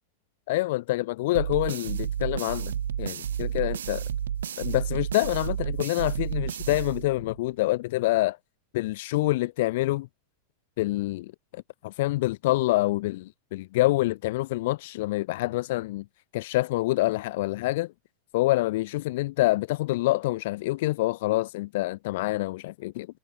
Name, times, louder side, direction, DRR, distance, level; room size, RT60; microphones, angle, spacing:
voice 1, 0.5-4.0 4.6-8.4 8.7-10.1 10.8-16.0 16.3-17.9 18.3-23.1, left 18 dB, 50° left, 1.5 m, -26 dB
sound 1, 1.3-7.5, right 9 dB, 65° right, 1.7 m, -31 dB
figure-of-eight pair, 90°, 0 cm